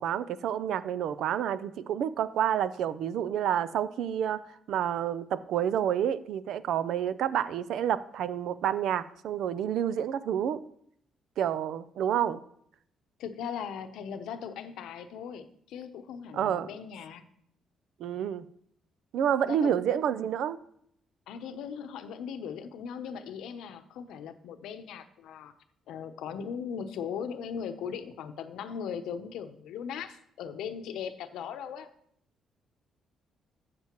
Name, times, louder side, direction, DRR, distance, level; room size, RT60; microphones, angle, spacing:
voice 1, 0.0-4.4 4.7-10.6 11.4-12.4 16.3-16.7 18.0-18.5 19.1-20.6, right 9 dB, 80° right, 0.5 m, -29 dB
voice 2, 13.2-17.2 19.4-19.7 21.3-25.5 25.9-31.9, left 7 dB, 85° left, 0.8 m, -39 dB
13.0 x 7.6 x 3.0 m
cardioid pair, 90°, 0 cm